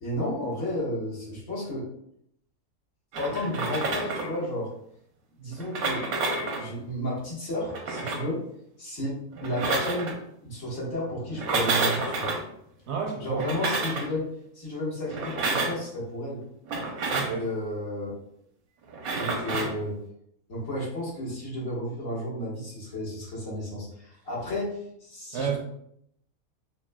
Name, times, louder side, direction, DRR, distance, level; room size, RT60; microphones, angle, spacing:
voice 1, 0.0-1.9 3.2-4.7 5.4-6.2 6.6-8.4 8.8-10.2 10.4-12.4 13.2-14.3 14.5-16.4 17.3-18.1 19.2-20.0 20.5-25.6, left 1 dB, 70° left, -6 dB, 1.7 m, -32 dB
sound 1, 3.1-4.4 5.5-6.7 7.6-8.3 9.3-10.2 11.3-12.4 13.3-14.1 15.1-15.8 16.7-17.4 18.9-19.8, right 3 dB, 85° right, 1.2 m, -29 dB
voice 2, 12.9-13.5 17.1-17.4 25.3-25.6, right 6 dB, 65° right, 1 dB, 0.8 m, -30 dB
6.1 x 2.1 x 2.2 m, 0.73 s
omnidirectional pair, 1.4 m